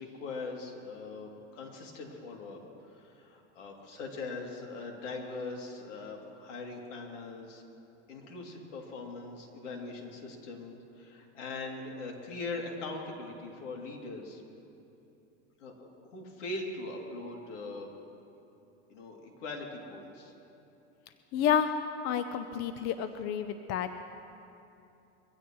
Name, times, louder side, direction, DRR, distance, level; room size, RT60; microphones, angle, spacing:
voice 1, 0.0-7.6 8.1-14.4 15.6-17.9 18.9-20.3, left 3 dB, 80° left, 0 dB, 2.9 m, -41 dB
voice 2, 21.3-21.7 22.0-23.9, left 8 dB, 45° left, 9 dB, 0.7 m, -30 dB
23.5 x 16.0 x 3.1 m, 2.8 s
hypercardioid pair, 105°, 36 cm